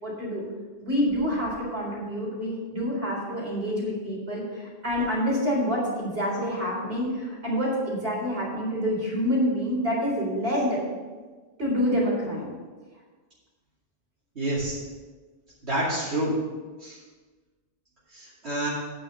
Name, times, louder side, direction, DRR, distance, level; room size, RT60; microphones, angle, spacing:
voice 1, 0.0-0.4 0.8-10.8 11.6-12.5, equal, 65° right, -5 dB, 4.1 m, -27 dB
voice 2, 14.3-14.8 15.6-16.3 16.8-17.0 18.1-18.7, right 1 dB, 80° right, -10 dB, 2.9 m, -28 dB
9.4 x 6.2 x 7.0 m, 1.4 s
omnidirectional pair, 1.1 m